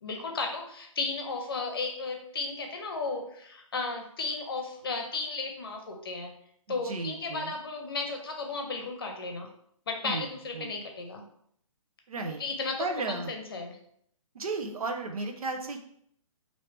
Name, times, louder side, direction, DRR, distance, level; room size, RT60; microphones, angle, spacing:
voice 1, 0.0-6.3 6.7-9.5 9.9-11.2 12.2-13.8, left 3 dB, 40° left, 3 dB, 0.7 m, -34 dB
voice 2, 6.7-7.6 10.0-10.8 12.1-12.4 12.8-13.3 14.3-15.8, right 3 dB, 85° right, 4 dB, 0.8 m, -34 dB
4.4 x 2.8 x 3.2 m, 0.67 s
hypercardioid pair, 180°, 18 cm